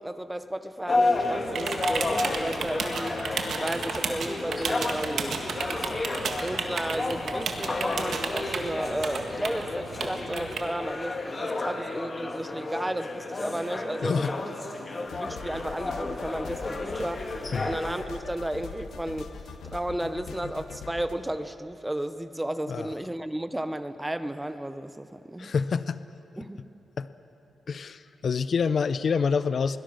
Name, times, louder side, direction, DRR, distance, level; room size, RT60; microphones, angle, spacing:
voice 1, 0.0-3.2 3.6-5.4 6.4-14.5 15.1-19.3 19.6-25.5 26.4-26.6, right 1 dB, 5° right, 11 dB, 0.7 m, -33 dB
sound 1, 0.9-18.0, left 2 dB, 25° left, 1.7 m, -32 dB
sound 2, 1.1-10.6, right 4 dB, 60° right, 1.8 m, -33 dB
voice 2, 14.0-14.3 17.5-17.7 22.7-22.9 25.4-26.0 27.0-27.1 27.7-29.8, left 5 dB, 45° left, 14 dB, 0.5 m, -27 dB
sound 3, 15.1-21.1, left 5 dB, 80° left, 1.3 m, -42 dB
21.5 x 19.0 x 6.3 m, 2.9 s
wide cardioid pair, 155°, 0 cm